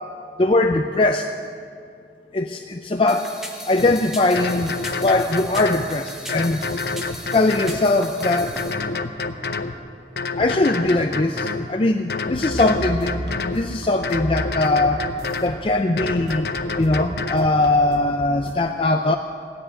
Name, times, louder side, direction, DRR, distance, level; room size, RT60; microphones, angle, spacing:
voice 1, 0.4-1.3 2.3-3.3 3.7-4.7 5.0-6.6 7.3-8.6 10.4-15.1 15.4-16.5 16.8-19.2, left 2 dB, 30° left, 5 dB, 0.5 m, -20 dB
sound 1, 3.1-8.7, left 1 dB, ahead, 1.0 m, -37 dB
sound 2, 3.8-3.9 4.4-5.9 6.3-7.8 8.2-9.8 10.2-11.7 12.1-13.6 14.0-15.6 16.0-17.5, left 4 dB, 65° left, 0.7 m, -28 dB
sound 3, 12.5-18.5, right 1 dB, 80° right, 1.2 m, -34 dB
16.0 x 7.9 x 9.7 m, 2.3 s
head